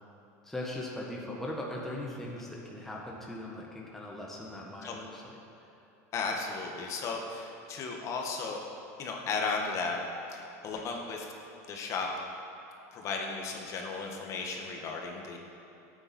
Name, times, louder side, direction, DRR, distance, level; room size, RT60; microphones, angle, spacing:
voice 1, 0.4-5.4, left 1 dB, 5° left, -3 dB, 1.3 m, -39 dB
voice 2, 6.1-8.6 9.0-10.0 10.3-11.3 11.7-12.1 12.9-15.4, left 4 dB, 40° left, 1 dB, 1.5 m, -35 dB
13.5 x 8.9 x 4.4 m, 2.8 s
supercardioid pair, 140°, 8 cm